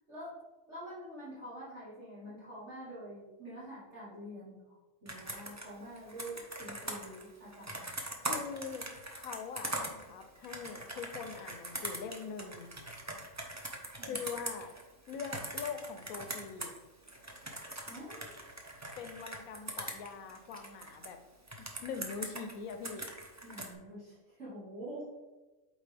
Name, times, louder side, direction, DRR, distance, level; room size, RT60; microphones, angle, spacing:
voice 1, 0.1-0.4 0.7-7.9 14.0-14.2 17.9-18.4 23.4-25.1, equal, 55° right, -9 dB, 1.9 m, -46 dB
Computer keyboard, 5.1-16.8 17.1-21.1 21.5-23.7, right 1 dB, 20° right, 0.5 m, -42 dB
voice 2, 8.2-8.9 9.2-12.7 14.0-14.7 15.1-16.7 19.0-21.2 21.6-23.1, left 6 dB, 80° left, 7 dB, 1.2 m, -42 dB
8.2 x 4.1 x 3.4 m, 1.1 s
omnidirectional pair, 1.5 m